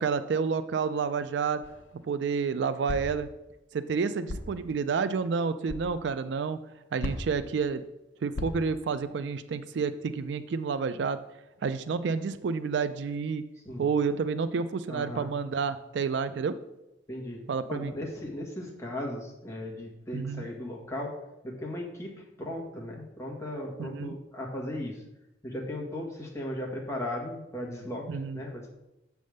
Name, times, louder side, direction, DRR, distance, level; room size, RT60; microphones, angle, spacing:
voice 1, 0.0-1.6 2.1-3.3 3.7-6.6 6.9-7.8 8.2-11.2 11.6-13.4 13.8-16.6 17.5-17.9 20.1-20.4 23.8-24.1 28.1-28.4, right 5 dB, 65° right, 13 dB, 0.4 m, -29 dB
sound 1, 1.6-2.0 2.9-3.2 4.3-4.6 5.7-5.9 7.0-7.5 8.3-8.8, left 1 dB, 80° left, 0.7 m, -36 dB
voice 2, 14.9-15.3 17.1-17.4 17.7-21.1 21.4-22.1 22.4-25.0 25.4-28.0 28.3-28.7, left 1 dB, 15° left, -2 dB, 1.5 m, -36 dB
7.5 x 3.5 x 6.4 m, 0.93 s
head